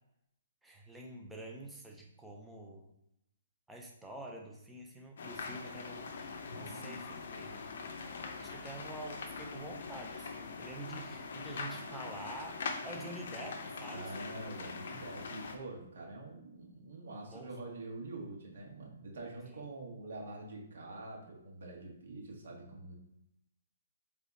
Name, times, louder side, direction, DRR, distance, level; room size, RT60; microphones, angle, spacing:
voice 1, 0.6-2.9 3.7-7.7 8.4-14.1 17.3-17.5 19.4-19.6, right 1 dB, 5° right, -1 dB, 0.4 m, -47 dB
sound 1, 5.2-15.6, left 4 dB, 50° left, 0.6 m, -43 dB
voice 2, 6.4-6.8 13.9-23.0, right 2 dB, 60° right, -1 dB, 1.1 m, -46 dB
3.6 x 3.5 x 3.9 m, 0.81 s
hypercardioid pair, 180°, 0 cm